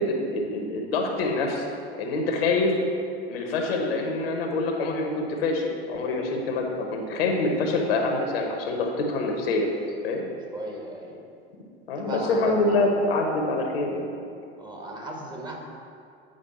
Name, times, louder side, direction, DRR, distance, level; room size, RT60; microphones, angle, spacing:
voice 1, 0.0-1.7 2.0-2.7 3.3-9.7 10.0-10.2 11.9-14.1, left 2 dB, 65° left, 2 dB, 1.1 m, -25 dB
voice 2, 10.5-11.2 12.0-12.7 14.6-15.6, right 1 dB, 15° right, -1 dB, 1.4 m, -36 dB
8.9 x 4.9 x 4.2 m, 2.4 s
figure-of-eight pair, 75°, 32 cm